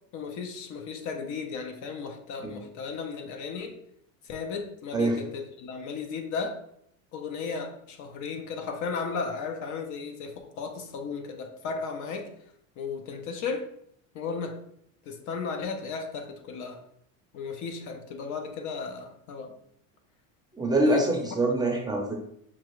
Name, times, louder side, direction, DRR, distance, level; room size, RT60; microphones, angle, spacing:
voice 1, 0.1-3.8 4.2-6.6 7.1-12.3 12.8-13.7 14.1-14.6 15.0-16.8 17.3-19.5 20.9-21.1, left 5 dB, 50° left, 5 dB, 0.7 m, -35 dB
voice 2, 20.6-22.2, right 1 dB, 10° right, 0 dB, 0.6 m, -24 dB
6.1 x 2.4 x 3.0 m, 0.71 s
supercardioid pair, 120°, 40 cm